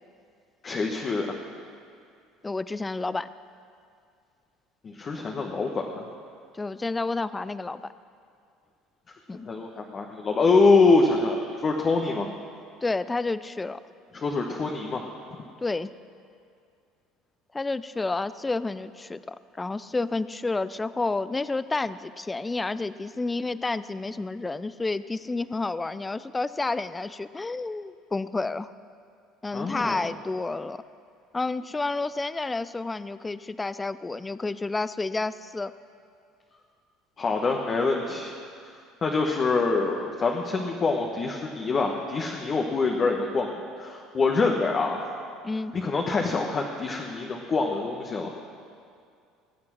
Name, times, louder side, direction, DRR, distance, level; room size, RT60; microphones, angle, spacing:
voice 1, 0.6-1.3 4.8-6.1 9.5-12.3 14.1-15.1 29.5-30.0 37.2-38.3 39.0-43.5 43.8-45.0 45.7-48.3, left 3 dB, 35° left, 1 dB, 1.2 m, -25 dB
voice 2, 2.4-3.3 6.6-7.9 9.3-9.5 12.8-13.8 15.6-15.9 17.5-28.7 29.4-30.8 31.3-35.7 45.4-45.8, left 3 dB, 15° left, 15 dB, 0.4 m, -30 dB
20.0 x 7.7 x 6.2 m, 2.3 s
supercardioid pair, 90°, 0 cm